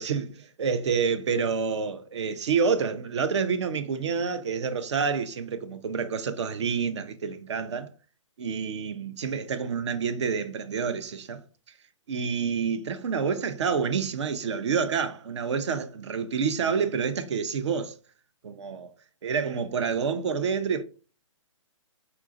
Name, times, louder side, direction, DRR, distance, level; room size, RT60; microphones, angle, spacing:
voice 1, 0.0-7.9 8.4-11.4 12.1-17.9 18.4-18.9 19.2-20.8, right 6 dB, 60° right, 0.5 m, -28 dB
3.9 x 2.3 x 2.5 m
figure-of-eight pair, 130°, 17 cm